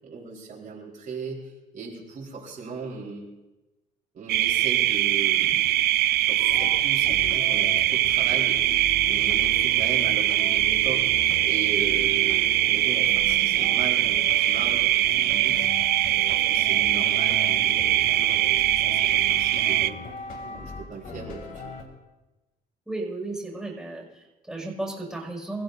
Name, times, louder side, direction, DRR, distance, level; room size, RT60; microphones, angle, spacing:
voice 1, 0.0-3.3 4.1-5.7 6.3-8.6 9.1-11.1 11.4-15.7 16.2-20.0 20.4-21.7, right 4 dB, 50° right, -4 dB, 4.4 m, -38 dB
sound 1, 4.3-19.9, right 14 dB, 75° right, 0.6 m, -22 dB
sound 2, 6.4-21.8, left 3 dB, 60° left, 2.9 m, -39 dB
voice 2, 22.9-25.6, right 2 dB, ahead, -3 dB, 6.0 m, -34 dB
27.5 x 15.5 x 2.7 m, 1.1 s
cardioid pair, 110°, 17 cm